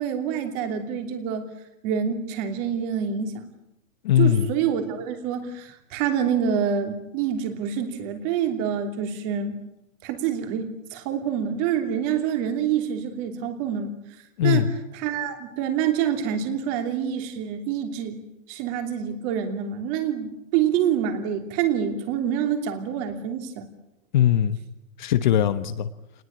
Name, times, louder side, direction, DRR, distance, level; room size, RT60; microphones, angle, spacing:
voice 1, 0.0-1.5 1.8-3.4 4.1-9.6 10.0-13.9 14.4-14.7 14.9-18.2 18.5-23.7, right 8 dB, 25° right, 6 dB, 2.9 m, -26 dB
voice 2, 4.0-4.5 14.4-14.7 24.1-24.6 25.0-25.9, left 10 dB, 35° left, 12 dB, 1.1 m, -20 dB
29.0 x 20.0 x 8.8 m, 0.86 s
hypercardioid pair, 165°, 41 cm